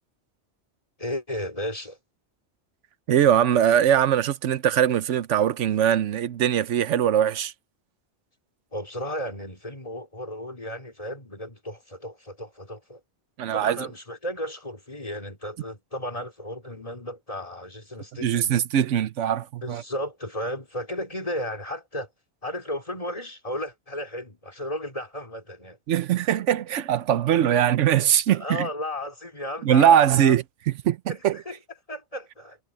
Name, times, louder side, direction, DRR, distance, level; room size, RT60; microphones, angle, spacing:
voice 1, 1.0-2.0 8.7-13.0 13.5-18.5 19.6-22.1 22.4-25.8 28.3-30.4 31.1-31.6 31.9-32.6, left 1 dB, 30° left, 3.7 m, -34 dB
voice 2, 3.1-7.5 13.4-13.8 18.2-19.8 25.9-28.7 29.6-30.4 30.8-31.0 31.2-31.4, right 10 dB, 85° right, 1.0 m, -21 dB
omnidirectional pair, 1.2 m